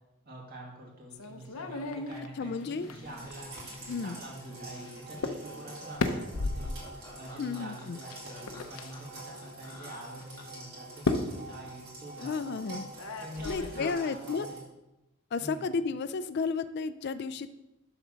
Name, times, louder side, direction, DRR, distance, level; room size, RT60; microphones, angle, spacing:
voice 1, 0.3-3.5 4.0-12.6 13.2-14.6 15.4-15.7, right 1 dB, 45° right, -3 dB, 2.1 m, -46 dB
sound 1, 1.1-4.0 4.8-4.9 5.2-5.4 5.7-6.9 8.1-8.9 9.7-9.8 11.0-11.4 13.0-13.9, left 3 dB, 75° left, 0.7 m, -34 dB
voice 2, 2.4-2.9 3.9-4.2 7.4-8.0 12.2-12.8 13.4-14.5 15.3-17.5, left 5 dB, 50° left, 11 dB, 0.3 m, -32 dB
Laughter, 2.8-10.7, left 1 dB, 15° left, 1.4 m, -50 dB
sound 2, 3.1-14.6, right 2 dB, 75° right, 3.0 m, -46 dB
11.5 x 3.9 x 6.2 m, 1.0 s
head